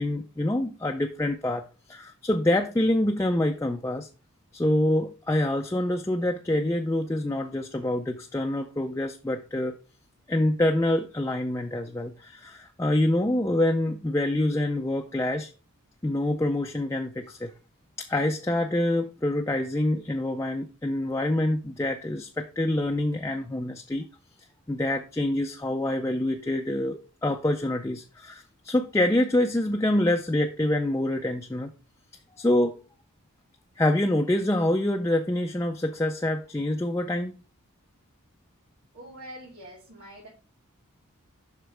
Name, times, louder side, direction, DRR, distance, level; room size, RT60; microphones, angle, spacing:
voice 1, 0.0-1.6 1.9-4.1 4.5-9.7 10.3-15.5 16.0-17.5 18.0-24.1 24.7-31.7 32.4-32.8 33.8-37.4, left 1 dB, 15° left, 4 dB, 0.4 m, -26 dB
voice 2, 38.9-40.3, equal, 90° right, -6 dB, 3.0 m, -44 dB
7.6 x 5.7 x 3.4 m, 0.35 s
head